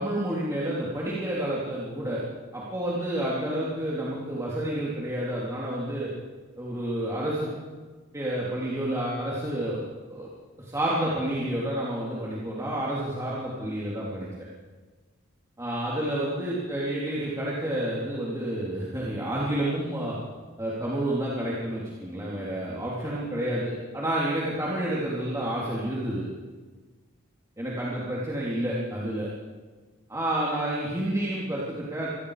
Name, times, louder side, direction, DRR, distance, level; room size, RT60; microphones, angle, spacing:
voice 1, 0.0-2.2 2.5-6.1 6.6-7.5 8.1-9.8 10.1-10.3 10.6-14.3 15.6-20.2 20.6-26.2 27.6-29.3 30.1-32.1, right 1 dB, 15° right, -6 dB, 3.4 m, -29 dB
27.0 x 19.5 x 5.1 m, 1.4 s
head